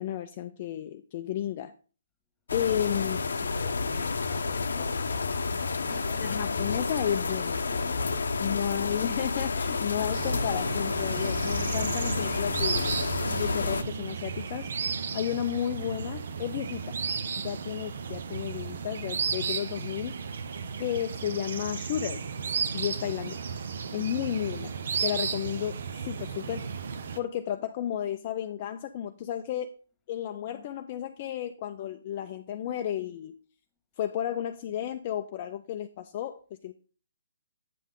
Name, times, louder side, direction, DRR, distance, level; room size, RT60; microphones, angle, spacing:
voice 1, 0.0-1.7 2.5-3.2 6.2-7.8 8.4-14.7 15.1-17.0 17.4-20.2 20.8-22.2 22.7-23.3 23.9-24.7 25.0-26.9 27.2-29.7 30.1-33.4 34.0-36.7, left 10 dB, 35° left, 6 dB, 0.4 m, -33 dB
sound 1, 2.5-13.8, left 4 dB, 80° left, 0.7 m, -30 dB
voice 2, 3.0-6.4 23.2-23.4, left 3 dB, 10° left, 4 dB, 1.6 m, -50 dB
sound 2, 10.1-27.2, right 6 dB, 60° right, 0.8 m, -34 dB
8.3 x 5.6 x 3.7 m, 0.39 s
hypercardioid pair, 160°, 0 cm